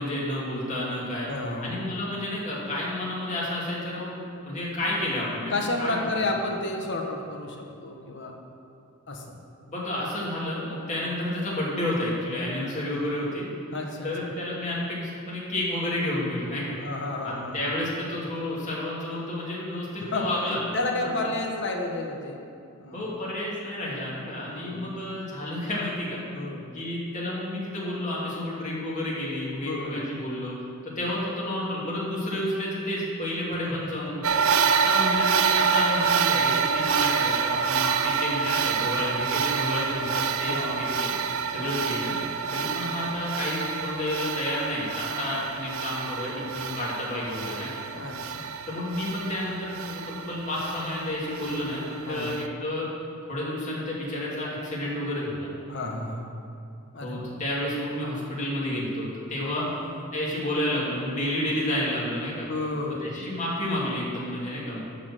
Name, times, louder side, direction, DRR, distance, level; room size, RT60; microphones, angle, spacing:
voice 1, 0.0-1.3 1.6-6.3 9.7-13.5 14.0-16.8 17.2-20.6 22.9-26.2 26.7-30.5 30.8-34.2 34.7-41.1 41.5-42.1 42.5-47.7 48.7-52.9 53.3-55.5 57.0-59.7 60.1-62.5 63.0-64.8, left 1 dB, 35° left, -6 dB, 2.6 m, -30 dB
voice 2, 1.3-1.9 5.5-8.3 9.1-9.3 11.0-11.1 13.7-14.3 16.8-17.6 20.1-22.4 22.8-23.0 24.5-24.9 26.3-26.7 29.6-30.1 33.6-33.7 38.9-39.1 40.5-40.7 41.6-41.8 42.5-42.7 45.2-45.5 47.9-48.5 52.0-52.3 55.7-56.3 56.9-57.3 59.6-60.0 62.5-63.2, left 2 dB, 55° left, 1 dB, 1.2 m, -32 dB
sound 1, 34.2-52.5, right 6 dB, 75° right, 0.5 m, -27 dB
11.5 x 4.3 x 7.6 m, 2.6 s
head